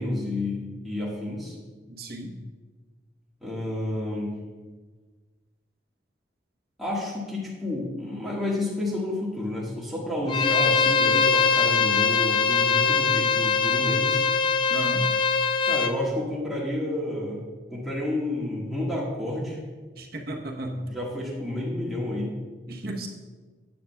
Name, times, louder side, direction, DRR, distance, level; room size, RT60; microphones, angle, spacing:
voice 1, 0.0-1.6 3.4-4.3 6.8-14.2 15.7-17.4 17.7-19.6 20.8-22.3, left 1 dB, ahead, -7 dB, 1.6 m, -30 dB
voice 2, 1.9-2.3 14.7-15.0 20.0-20.8 22.7-23.1, right 1 dB, 55° right, 0 dB, 1.0 m, -33 dB
Bowed string instrument, 10.3-15.9, left 5 dB, 25° left, 0.3 m, -22 dB
11.5 x 8.1 x 2.3 m, 1.4 s
head